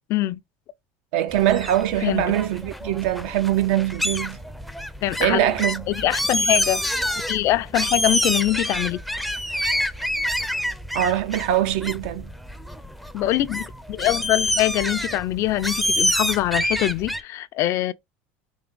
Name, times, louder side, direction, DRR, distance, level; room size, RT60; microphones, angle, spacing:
voice 1, 0.1-0.4 2.0-2.3 5.0-5.4 5.9-6.8 7.3-9.0 13.1-17.9, left 15 dB, 55° left, 0.4 m, -23 dB
voice 2, 1.1-4.4 5.2-5.9 10.9-12.3, right 12 dB, 75° right, 0.7 m, -22 dB
sound 1, 1.3-17.2, equal, ahead, 0.5 m, -27 dB
3.5 x 3.2 x 3.5 m
supercardioid pair, 95°, 6 cm